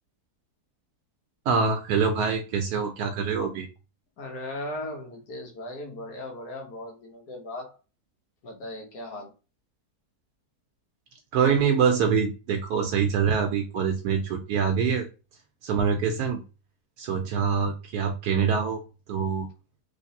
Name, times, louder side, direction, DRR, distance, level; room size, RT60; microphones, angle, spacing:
voice 1, 1.5-3.7 11.3-15.1 15.6-16.4 17.0-18.8 19.1-19.5, right 6 dB, 75° right, 1.1 m, -25 dB
voice 2, 4.2-7.8 8.4-9.3, left 1 dB, 70° left, 1.6 m, -37 dB
3.2 x 3.2 x 2.7 m
omnidirectional pair, 1.7 m